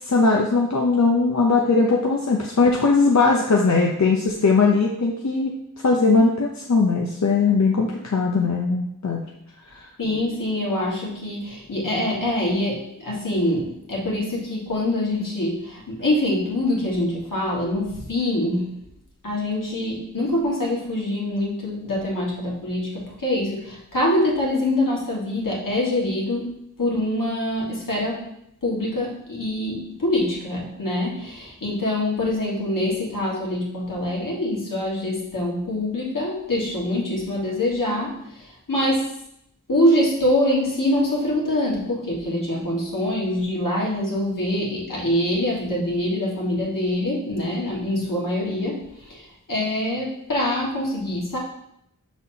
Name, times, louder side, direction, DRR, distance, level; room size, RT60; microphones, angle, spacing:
voice 1, 0.0-5.5 5.8-9.2 9.7-9.9, left 4 dB, 60° left, -1 dB, 0.7 m, -19 dB
voice 2, 10.0-18.8 19.2-26.5 26.8-28.2 28.6-39.1 39.7-51.4, left 1 dB, 75° left, -4 dB, 1.7 m, -24 dB
6.1 x 5.6 x 2.8 m, 0.78 s
wide cardioid pair, 60°, 32 cm